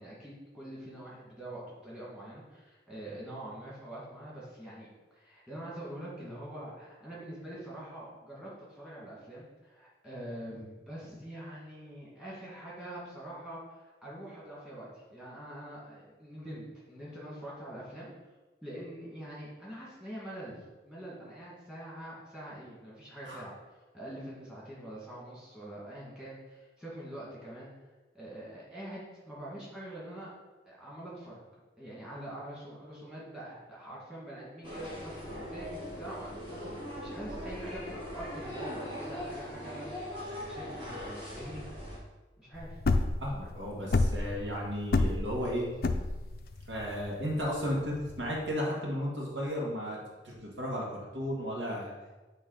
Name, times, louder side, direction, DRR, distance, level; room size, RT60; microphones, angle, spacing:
voice 1, 0.0-4.9 5.1-18.1 18.6-23.5 23.9-27.7 28.1-30.3 30.7-31.4 31.8-41.6 42.4-42.8, right 1 dB, 5° right, -7 dB, 2.1 m, -44 dB
sound 1, 34.6-42.0, left 1 dB, 25° right, 1.5 m, -41 dB
sound 2, 35.1-40.1, right 1 dB, 10° left, 0.6 m, -48 dB
sound 3, 42.6-48.5, left 3 dB, 55° left, 0.4 m, -29 dB
voice 2, 43.2-45.7 46.7-50.0 50.2-51.9, equal, 80° right, -3 dB, 1.8 m, -34 dB
8.3 x 3.3 x 5.0 m, 1.2 s
head